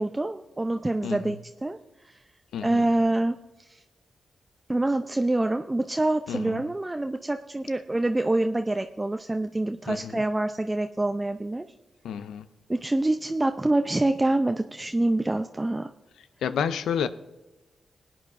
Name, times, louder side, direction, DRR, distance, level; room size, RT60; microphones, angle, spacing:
voice 1, 0.0-1.8 2.0-2.2 2.6-3.8 4.7-11.6 12.7-15.9, right 2 dB, 20° right, 0.6 m, -26 dB
voice 2, 1.0-1.4 2.5-2.9 6.3-6.6 9.9-10.2 12.0-12.5 16.4-17.1, left 8 dB, 80° left, 0.5 m, -30 dB
19.5 x 8.8 x 2.6 m
supercardioid pair, 40°, 0 cm